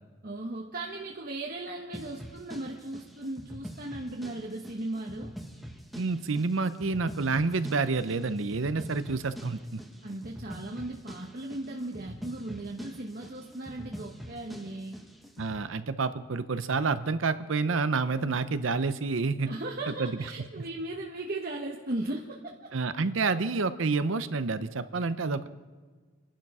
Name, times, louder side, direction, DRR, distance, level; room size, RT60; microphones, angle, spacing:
voice 1, 0.2-5.3 10.0-15.0 19.5-22.7, right 2 dB, 45° right, 0 dB, 1.1 m, -37 dB
sound 1, 1.9-15.6, equal, ahead, 1.1 m, -45 dB
voice 2, 6.0-9.8 15.4-19.5 20.0-20.1 20.6-20.7 22.7-25.5, right 4 dB, 75° right, 12 dB, 0.7 m, -28 dB
26.5 x 11.5 x 4.9 m, 1.4 s
head